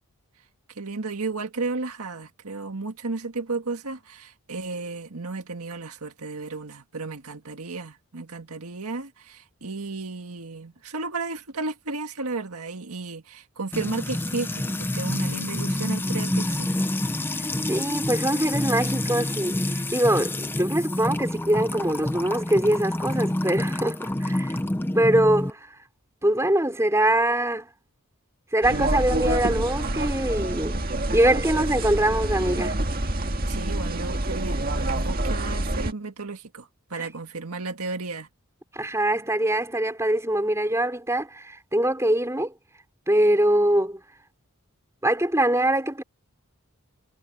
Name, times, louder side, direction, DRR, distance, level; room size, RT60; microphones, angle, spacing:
voice 1, 0.8-16.9 33.5-38.3, right 3 dB, 85° right, 1.7 m, -33 dB
Music / Water tap faucet / Trickle dribble, 13.7-25.5, left 1 dB, 10° left, 0.5 m, -28 dB
voice 2, 17.7-24.6 24.9-25.7 26.2-27.7 28.5-30.8 31.1-32.8 37.0-37.1 38.7-42.5 43.1-44.0 45.0-46.0, right 1 dB, 15° right, 4.5 m, -23 dB
sound 1, 28.6-35.9, right 1 dB, 40° right, 1.8 m, -27 dB
head